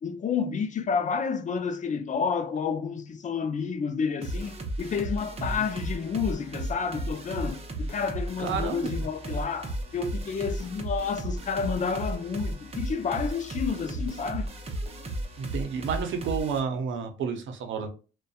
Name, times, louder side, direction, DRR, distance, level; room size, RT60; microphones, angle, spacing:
voice 1, 0.0-14.5, left 6 dB, 40° left, 0.4 m, -30 dB
sound 1, 4.2-16.6, right 1 dB, 30° right, 0.7 m, -34 dB
voice 2, 8.4-8.9 15.4-17.9, right 6 dB, 75° right, 0.7 m, -31 dB
2.6 x 2.3 x 2.3 m
cardioid pair, 90°, 20 cm